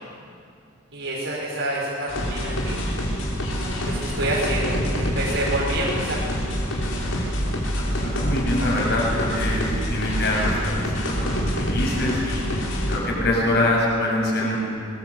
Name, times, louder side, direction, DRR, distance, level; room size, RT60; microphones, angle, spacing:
voice 1, 0.9-2.8 3.8-6.3, right 1 dB, 80° right, -6 dB, 5.5 m, -27 dB
sound 1, 2.1-13.0, equal, 85° left, 5.7 m, -26 dB
voice 2, 7.9-12.4 12.9-14.6, left 1 dB, 55° left, -3 dB, 7.4 m, -24 dB
25.0 x 22.0 x 8.3 m, 2.3 s
head